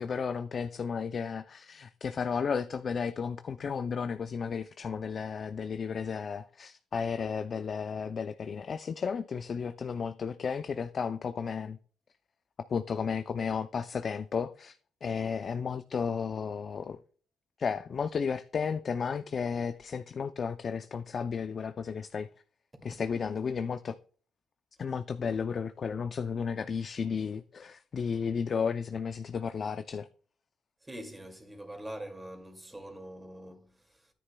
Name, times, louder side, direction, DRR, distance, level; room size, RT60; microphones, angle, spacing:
voice 1, 0.0-11.8 12.7-17.0 17.6-22.3 22.8-23.9 24.8-30.1, left 6 dB, 45° left, 0.4 m, -33 dB
voice 2, 30.8-34.1, right 1 dB, 15° right, 2.3 m, -44 dB
11.0 x 10.0 x 2.2 m
cardioid pair, 90°, 0 cm